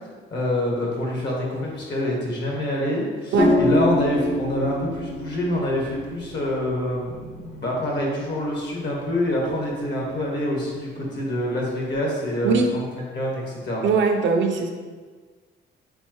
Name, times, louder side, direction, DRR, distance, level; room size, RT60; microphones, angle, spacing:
voice 1, 0.3-13.8, left 1 dB, 60° left, -2 dB, 1.5 m, -26 dB
sound 1, 3.4-11.9, left 1 dB, 35° left, 0.5 m, -29 dB
voice 2, 13.8-14.7, right 5 dB, 65° right, 4 dB, 0.6 m, -20 dB
4.4 x 3.9 x 3.1 m, 1.5 s
cardioid pair, 90°, 20 cm